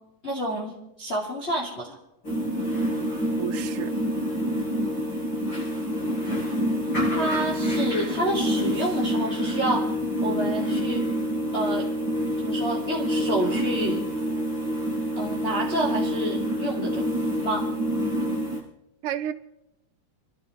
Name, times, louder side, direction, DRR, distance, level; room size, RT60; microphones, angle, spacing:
voice 1, 0.2-2.0 7.1-9.9 10.2-11.1 11.5-11.9 12.4-14.0 15.2-17.0 17.4-17.7, right 1 dB, 20° left, -5 dB, 2.6 m, -29 dB
sound 1, 2.2-18.6, equal, 45° left, 8.0 m, -27 dB
voice 2, 2.4-3.1 3.4-3.9 19.0-19.3, right 10 dB, 85° right, 8 dB, 1.2 m, -33 dB
30.0 x 12.5 x 3.3 m, 0.86 s
omnidirectional pair, 3.4 m